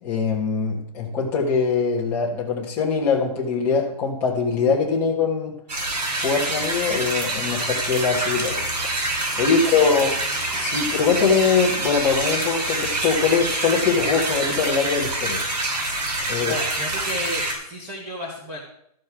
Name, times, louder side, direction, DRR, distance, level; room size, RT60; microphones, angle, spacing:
voice 1, 0.0-5.5 6.2-8.7 9.3-10.2 10.6-15.4 16.3-16.6, left 5 dB, 10° left, -4 dB, 1.4 m, -22 dB
sound 1, 5.7-17.5, right 2 dB, 85° right, 5.1 m, -26 dB
voice 2, 9.4-9.8 16.5-18.6, equal, 15° right, -3 dB, 1.2 m, -33 dB
13.0 x 5.2 x 6.1 m, 0.72 s
hypercardioid pair, 180°, 21 cm